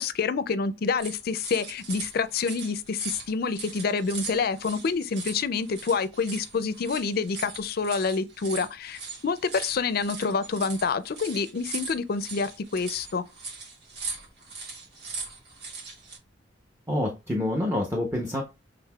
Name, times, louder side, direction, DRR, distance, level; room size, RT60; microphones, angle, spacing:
voice 1, 0.0-13.3, left 4 dB, 55° left, 0.4 m, -27 dB
sound 1, 1.0-16.2, right 4 dB, 65° right, 2.5 m, -40 dB
voice 2, 16.9-18.4, left 1 dB, 15° right, 0.7 m, -27 dB
6.4 x 3.5 x 2.3 m
head